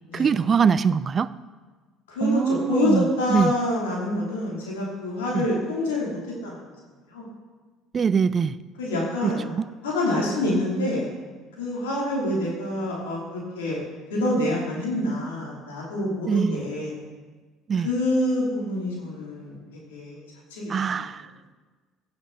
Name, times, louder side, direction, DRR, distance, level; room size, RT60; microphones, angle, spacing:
voice 1, 0.1-1.3 2.2-3.5 5.3-5.4 7.9-8.6 9.2-9.6 16.3-16.6 17.7-17.9 20.7-21.3, right 6 dB, 40° right, 17 dB, 0.4 m, -23 dB
voice 2, 2.1-6.7 7.1-7.3 8.8-9.4 9.8-11.1 11.6-13.8 14.1-16.9 17.8-19.6 19.9-20.2 20.5-21.0, left 1 dB, 85° left, -4 dB, 3.0 m, -26 dB
16.0 x 7.0 x 4.0 m, 1.4 s
hypercardioid pair, 65°, 0 cm